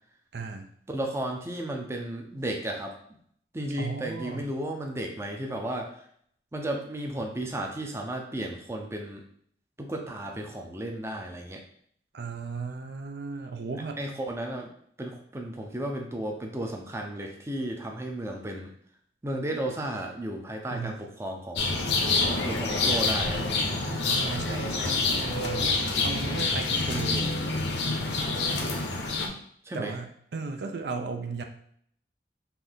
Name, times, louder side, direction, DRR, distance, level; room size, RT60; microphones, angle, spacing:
voice 1, 0.3-0.7 3.8-4.4 12.1-14.0 20.7-21.0 24.1-27.4 29.7-31.4, right 4 dB, 65° right, 5 dB, 0.5 m, -35 dB
voice 2, 0.9-3.0 3.5-5.9 6.5-9.2 9.8-11.6 14.0-14.7 15.0-18.7 19.2-21.8 22.4-23.4 29.6-29.9, right 1 dB, 15° right, 2 dB, 0.5 m, -34 dB
sound 1, 21.6-29.3, left 3 dB, 75° left, 0.8 m, -27 dB
5.8 x 2.6 x 3.5 m, 0.64 s
head